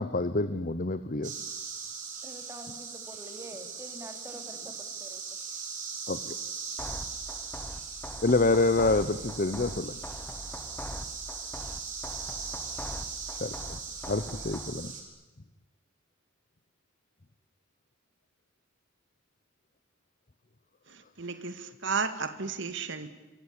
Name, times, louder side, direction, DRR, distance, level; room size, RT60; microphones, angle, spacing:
voice 1, 0.0-1.3 6.1-6.4 8.2-10.0 13.3-13.8 14.1-14.9, left 2 dB, 40° left, 13 dB, 1.0 m, -27 dB
sound 1, 1.2-15.0, right 5 dB, 40° right, 5.2 m, -40 dB
voice 2, 2.2-5.2, right 1 dB, 15° right, 6 dB, 3.2 m, -46 dB
sound 2, 6.8-14.8, left 1 dB, 10° left, 1.3 m, -42 dB
voice 3, 20.9-23.1, right 5 dB, 60° right, 10 dB, 2.1 m, -33 dB
25.5 x 24.0 x 8.6 m, 1.1 s
head